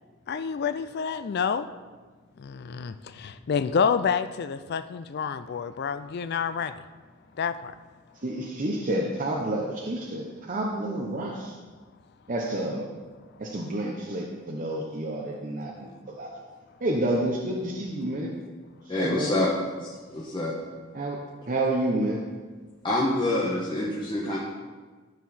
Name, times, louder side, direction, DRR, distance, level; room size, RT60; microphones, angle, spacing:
voice 1, 0.3-1.7 2.4-6.8 7.4-7.7, left 6 dB, 50° left, 0.3 m, -28 dB
voice 2, 8.2-11.5 12.3-12.8 13.4-16.3 16.8-18.3 19.0-19.4 20.9-21.2 21.5-22.2, right 1 dB, 35° right, 0.8 m, -29 dB
voice 3, 18.9-19.5 19.8-20.6 22.8-24.4, left 1 dB, 20° left, 1.1 m, -27 dB
14.0 x 4.7 x 4.2 m
head